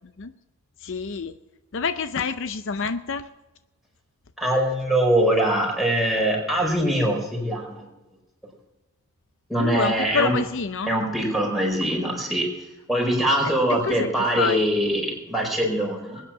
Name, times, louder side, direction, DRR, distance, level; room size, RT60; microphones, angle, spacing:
voice 1, 0.8-1.3 1.7-3.3 9.6-10.9 13.7-14.1 14.3-14.6, left 5 dB, 60° left, 10 dB, 0.6 m, -27 dB
voice 2, 4.4-7.9 9.5-10.3 10.9-12.5 12.9-16.2, right 1 dB, ahead, -1 dB, 4.8 m, -23 dB
21.0 x 9.8 x 5.9 m, 1.0 s
head